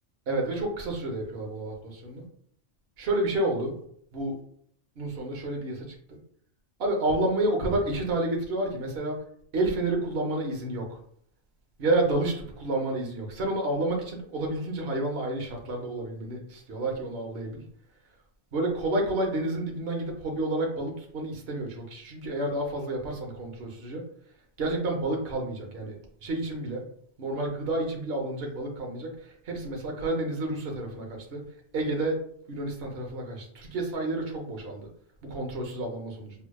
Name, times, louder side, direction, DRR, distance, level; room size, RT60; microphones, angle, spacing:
voice 1, 0.3-2.3 3.0-3.7 4.1-4.3 5.0-6.2 6.8-9.2 9.5-11.0 11.8-17.6 18.5-24.0 24.6-26.8 27.2-31.4 31.7-32.2 32.5-34.9 35.2-36.3, right 2 dB, 60° right, 1 dB, 1.0 m, -30 dB
4.7 x 2.8 x 2.2 m, 0.64 s
omnidirectional pair, 1.2 m